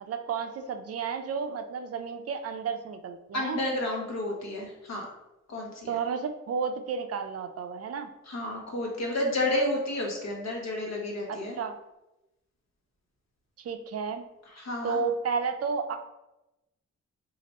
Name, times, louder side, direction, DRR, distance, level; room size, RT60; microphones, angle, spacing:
voice 1, 0.0-3.6 5.9-8.1 11.3-11.8 13.6-14.2 14.8-16.0, right 5 dB, 55° right, 7 dB, 0.4 m, -32 dB
voice 2, 3.3-5.1 5.5-6.0 8.3-11.6 14.5-15.0, left 1 dB, 65° left, 0 dB, 1.1 m, -31 dB
2.9 x 2.5 x 4.1 m, 0.96 s
cardioid pair, 85°, 29 cm